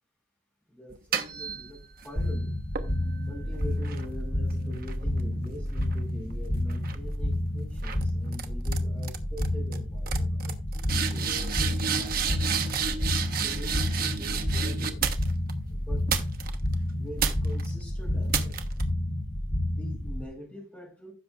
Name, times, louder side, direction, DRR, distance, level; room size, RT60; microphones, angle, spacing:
voice 1, 0.7-2.5 3.3-12.7 13.4-15.0 15.7-16.1 16.9-18.6 19.7-21.1, equal, 10° left, -1 dB, 4.5 m, -44 dB
sound 1, 0.9-2.1 2.8-6.3 6.7-7.1 7.8-8.0 8.3-8.8 9.0-9.5 9.7-9.8 10.1-15.5 16.1-16.7 17.2-17.7 18.3-18.8, right 6 dB, 50° right, 1.1 m, -32 dB
sound 2, 2.2-20.2, left 1 dB, 60° left, 1.7 m, -30 dB
16.0 x 6.9 x 2.4 m, 0.32 s
head